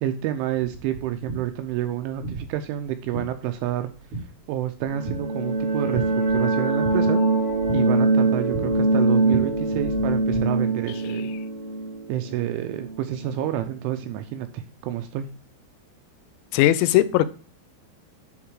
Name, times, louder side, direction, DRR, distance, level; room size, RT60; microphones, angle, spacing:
voice 1, 0.0-3.9 4.5-7.2 7.7-11.3 12.1-15.3, right 12 dB, 85° right, 7 dB, 2.8 m, -29 dB
sound 1, 0.7-10.4, right 3 dB, 60° right, 5.1 m, -37 dB
sound 2, 4.8-13.4, right 2 dB, 35° right, 1.6 m, -23 dB
voice 2, 16.5-17.3, left 13 dB, 90° left, 13 dB, 3.4 m, -18 dB
11.0 x 3.7 x 4.7 m, 0.38 s
omnidirectional pair, 6.0 m